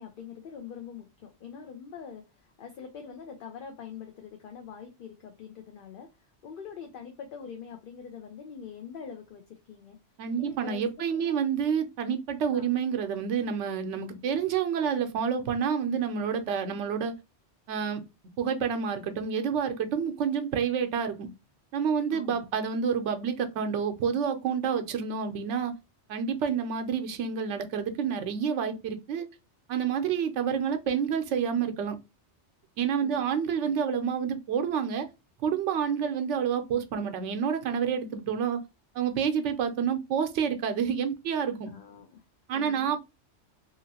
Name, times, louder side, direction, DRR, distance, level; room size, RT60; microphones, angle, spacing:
voice 1, 0.0-10.0 10.4-10.8 11.1-11.4 12.5-12.7 22.1-22.4 33.0-33.4 33.6-33.7 41.7-42.2 42.5-42.9, left 7 dB, 60° left, 0.7 m, -44 dB
voice 2, 10.2-17.1 17.7-18.0 18.4-21.3 21.7-25.7 26.1-29.3 29.7-32.0 32.8-35.1 35.4-38.6 38.9-41.7 42.5-43.0, right 7 dB, 80° right, 0.9 m, -28 dB
2.8 x 2.5 x 2.7 m
omnidirectional pair, 1.2 m